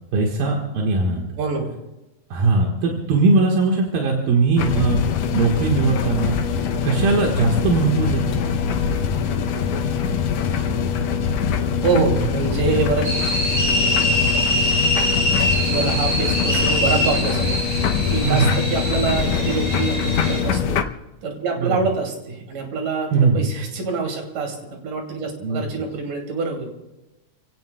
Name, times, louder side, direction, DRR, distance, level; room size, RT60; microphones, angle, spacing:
voice 1, 0.1-1.3 2.3-5.0 5.3-6.4 6.8-8.4 18.2-18.5 21.6-21.8 23.1-23.4 25.4-25.6, right 3 dB, 85° right, -1 dB, 3.2 m, -20 dB
voice 2, 1.4-1.7 11.8-13.1 15.6-17.6 18.1-20.8 21.2-26.8, right 4 dB, 70° right, 2 dB, 4.2 m, -25 dB
sound 1, 4.6-20.8, left 7 dB, 85° left, 1.4 m, -23 dB
sound 2, 13.0-20.4, equal, 45° right, 5.3 m, -23 dB
29.0 x 16.5 x 2.3 m, 1.0 s
omnidirectional pair, 4.0 m